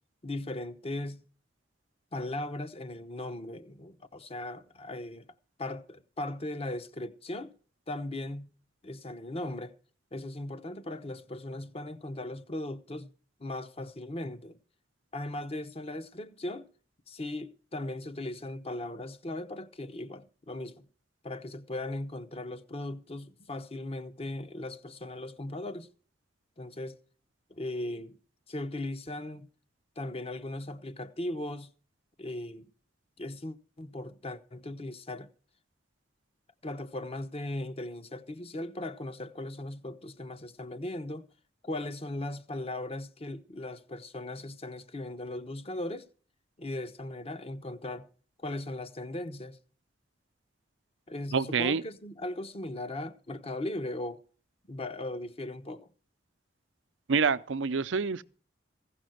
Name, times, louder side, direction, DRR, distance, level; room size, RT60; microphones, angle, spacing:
voice 1, 0.2-1.2 2.1-5.2 5.6-7.5 7.9-8.5 8.8-9.7 10.1-13.1 13.4-14.6 15.1-16.7 17.1-20.9 21.2-25.9 26.6-27.0 27.5-28.2 28.5-29.5 30.0-31.7 32.2-32.7 33.2-35.3 36.6-41.3 41.6-46.1 46.6-48.1 48.4-49.6 51.1-54.2 54.7-55.9, left 1 dB, 35° left, 0.9 m, -38 dB
voice 2, 51.3-51.8 57.1-58.2, right 5 dB, 90° right, 0.6 m, -27 dB
15.5 x 6.1 x 7.8 m
head